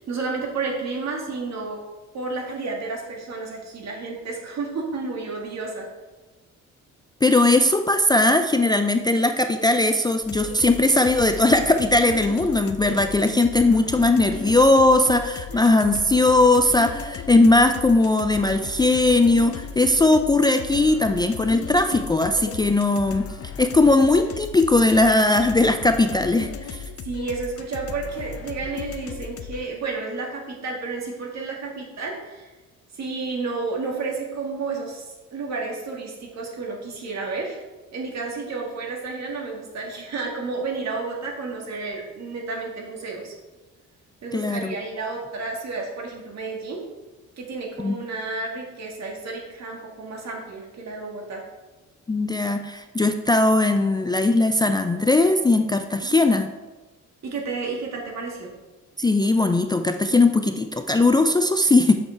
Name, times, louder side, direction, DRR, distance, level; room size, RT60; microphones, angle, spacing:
voice 1, 0.0-1.8 2.1-5.9 15.5-15.6 27.0-32.5 32.9-37.6 37.9-43.3 44.2-46.8 47.4-51.4 56.0-56.3 57.2-58.5, right 4 dB, 60° right, 0 dB, 1.9 m, -31 dB
voice 2, 7.2-23.3 23.6-26.8 44.3-44.7 47.8-48.0 52.1-56.5 59.0-61.9, left 2 dB, 15° left, 6 dB, 0.3 m, -19 dB
sound 1, 10.2-29.7, left 7 dB, 50° left, 0.6 m, -36 dB
6.6 x 5.4 x 4.5 m, 1.2 s
cardioid pair, 90°, 30 cm